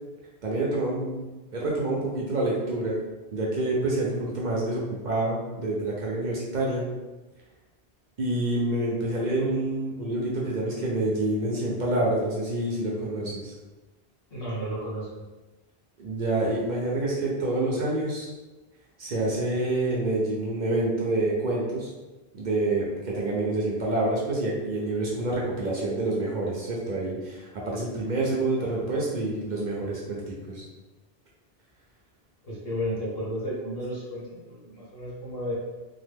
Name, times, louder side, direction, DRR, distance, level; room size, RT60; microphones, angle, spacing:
voice 1, 0.4-3.0 3.3-6.8 8.2-13.5 16.0-18.3 19.0-21.9 22.3-30.6, right 2 dB, 55° right, -4 dB, 0.6 m, -27 dB
voice 2, 14.3-15.1 28.2-28.8 32.4-35.5, equal, 70° left, -6 dB, 1.3 m, -33 dB
2.9 x 2.0 x 3.4 m, 1.1 s
omnidirectional pair, 1.1 m